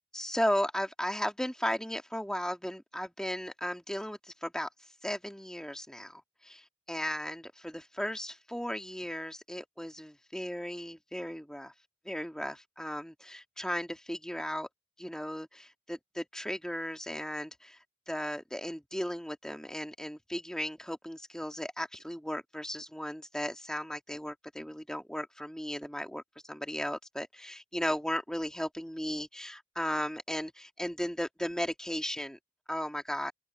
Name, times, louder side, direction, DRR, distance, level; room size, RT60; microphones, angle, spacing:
voice 1, 0.1-4.7 5.0-11.7 12.1-14.7 15.0-17.8 18.1-32.4 32.7-33.3, equal, 5° left, 1.9 m, -36 dB
head